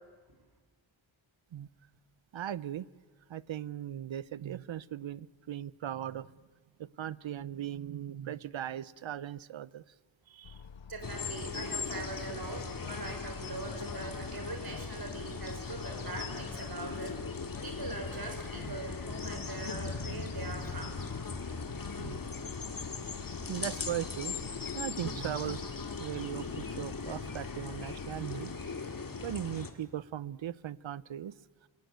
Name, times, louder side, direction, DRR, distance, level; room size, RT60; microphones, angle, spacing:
voice 1, 2.3-2.8 3.3-6.3 6.8-9.8 10.3-10.5 22.0-22.2 23.5-24.3 24.7-25.6 26.0-28.6 29.2-31.3, right 11 dB, 70° right, 20 dB, 0.7 m, -38 dB
sound 1, 10.4-28.2, left 6 dB, 65° left, 1.1 m, -50 dB
voice 2, 10.9-17.2 17.6-21.0, right 3 dB, 50° right, 5 dB, 5.3 m, -42 dB
sound 2, 11.0-29.7, left 4 dB, 45° left, 2.0 m, -39 dB
29.5 x 17.5 x 9.4 m, 1.4 s
wide cardioid pair, 115°, 48 cm